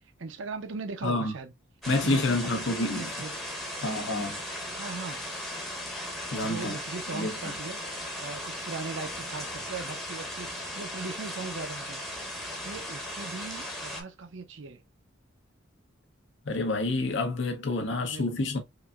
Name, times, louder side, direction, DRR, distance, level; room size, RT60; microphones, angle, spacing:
voice 1, 0.2-1.5 2.0-3.4 4.8-5.2 6.4-7.8 8.2-12.0 12.6-14.8 17.9-18.3, right 4 dB, 70° right, 0.6 m, -39 dB
voice 2, 1.0-1.3 1.9-3.1 3.8-4.4 6.3-6.8 7.1-7.3 16.5-18.6, left 2 dB, 65° left, 0.9 m, -28 dB
sound 1, 1.8-14.0, left 1 dB, ahead, 0.8 m, -37 dB
4.9 x 2.6 x 2.3 m
head